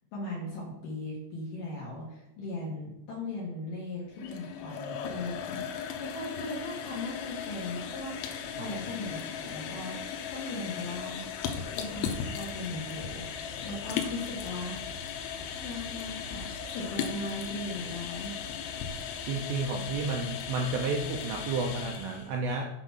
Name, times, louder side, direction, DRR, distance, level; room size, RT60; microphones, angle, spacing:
voice 1, 0.1-11.2 11.7-15.1 15.6-18.4, left 2 dB, 60° left, -5 dB, 2.4 m, -38 dB
sound 1, 4.1-22.3, left 7 dB, 90° left, 3.3 m, -37 dB
voice 2, 19.3-22.7, right 3 dB, 80° right, 1 dB, 2.6 m, -31 dB
8.4 x 4.0 x 5.8 m, 0.90 s
omnidirectional pair, 5.7 m